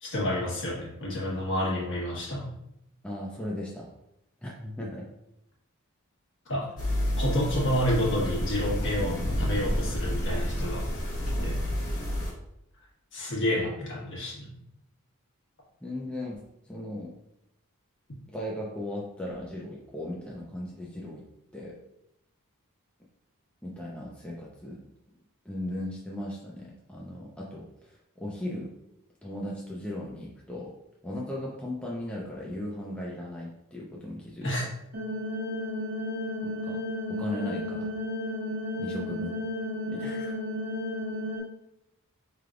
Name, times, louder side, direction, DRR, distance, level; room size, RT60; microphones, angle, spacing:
voice 1, 0.0-2.5 6.5-6.7 7.2-10.8 11.4-11.6 13.1-14.5 34.4-34.7, left 1 dB, 55° left, -4 dB, 1.4 m, -29 dB
voice 2, 3.0-3.9 4.4-5.1 6.9-7.2 15.8-17.1 18.3-21.3 21.5-21.8 23.6-24.8 25.4-27.7 28.2-28.7 29.2-30.7 31.0-34.7 36.4-36.8 37.1-37.9 38.8-39.4 39.9-40.4, left 1 dB, 5° left, -4 dB, 0.5 m, -37 dB
sound 1, 6.8-12.3, equal, 35° left, 1.5 m, -29 dB
sound 2, 34.9-41.4, left 1 dB, 75° right, 1.0 m, -33 dB
4.5 x 3.3 x 2.5 m, 0.81 s
head